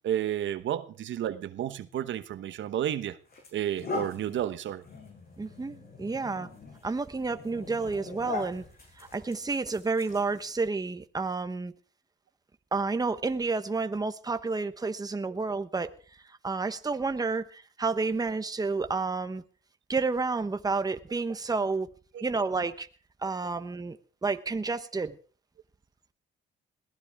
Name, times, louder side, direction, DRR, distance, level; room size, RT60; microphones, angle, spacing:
voice 1, 0.0-3.2 3.5-4.8 22.1-22.2, right 11 dB, 70° right, 1.1 m, -31 dB
sound 1, 2.5-2.7 3.3-10.7, left 4 dB, 50° left, 7.2 m, -42 dB
voice 2, 5.4-6.5 6.8-8.6 9.0-11.7 12.7-15.9 16.4-19.4 19.9-21.9 22.2-22.9 23.2-24.0 24.2-25.2, right 4 dB, 20° right, 1.1 m, -30 dB
21.5 x 16.0 x 3.6 m
cardioid pair, 90°, 20 cm